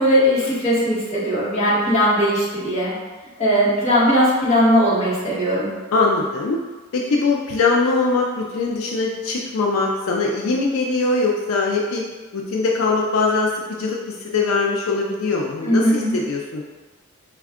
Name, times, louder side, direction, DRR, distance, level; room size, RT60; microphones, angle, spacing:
voice 1, 0.0-2.9 3.4-5.7 15.6-16.2, equal, 35° left, -8 dB, 1.3 m, -18 dB
voice 2, 5.9-6.6 6.9-12.0 12.3-16.6, left 3 dB, 85° left, -1 dB, 0.4 m, -21 dB
4.2 x 2.3 x 3.5 m, 1.3 s
head